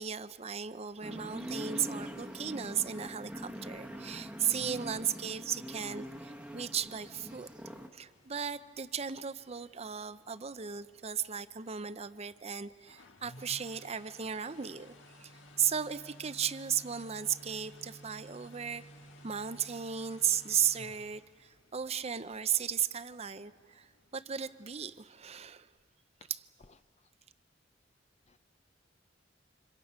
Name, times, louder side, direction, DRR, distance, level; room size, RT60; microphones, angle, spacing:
voice 1, 0.0-7.5 7.9-15.3 15.6-18.8 19.2-25.7, right 8 dB, 35° right, 13 dB, 0.6 m, -35 dB
sound 1, 1.0-7.9, equal, 5° right, 1.1 m, -43 dB
sound 2, 6.8-25.3, equal, 85° left, 1.6 m, -57 dB
voice 2, 26.6-27.1 28.3-28.4, left 4 dB, 35° left, 10 dB, 0.6 m, -60 dB
30.0 x 27.0 x 5.6 m, 2.1 s
head